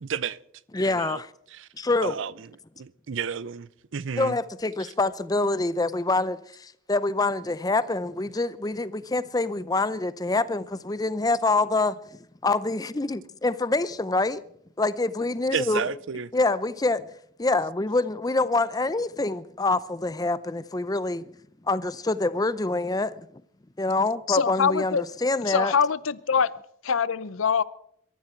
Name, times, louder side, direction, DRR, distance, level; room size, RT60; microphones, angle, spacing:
voice 1, 0.0-0.4 0.9-1.2 1.5-1.7 2.0-2.3 2.8-4.4 15.5-16.3, right 6 dB, 65° right, 0.5 m, -31 dB
voice 2, 0.7-1.3 1.8-2.2 4.1-12.0 12.4-14.4 14.8-15.8 16.3-17.1 17.4-21.4 21.7-23.1 23.8-25.7, left 2 dB, 20° left, 0.5 m, -26 dB
voice 3, 24.3-25.0 25.5-26.5 26.8-27.6, left 6 dB, 80° left, 0.6 m, -24 dB
22.5 x 13.5 x 4.5 m
head